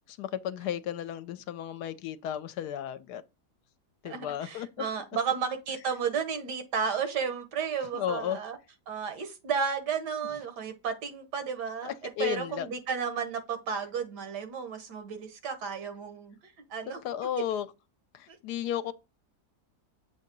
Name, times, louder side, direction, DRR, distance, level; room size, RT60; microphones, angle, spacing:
voice 1, 0.1-3.2 4.0-4.7 7.9-8.4 11.8-12.7 16.9-17.7 18.1-18.9, left 10 dB, 75° left, 1.1 m, -34 dB
voice 2, 4.0-8.6 8.9-11.9 12.2-17.0 18.3-18.4, right 6 dB, 85° right, 1.7 m, -33 dB
7.0 x 2.7 x 5.2 m
omnidirectional pair, 1.8 m